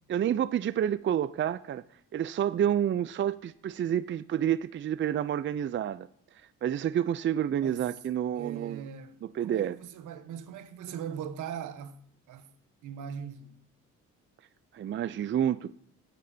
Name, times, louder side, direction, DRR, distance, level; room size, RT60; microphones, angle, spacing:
voice 1, 0.1-1.8 2.1-6.1 6.6-8.8 9.2-9.8 14.7-15.7, right 10 dB, 40° right, 0.5 m, -29 dB
voice 2, 7.6-8.0 8.3-12.0 12.3-12.5 12.8-13.6, right 8 dB, 85° right, 1.1 m, -40 dB
15.5 x 9.1 x 2.8 m
cardioid pair, 90°, 30 cm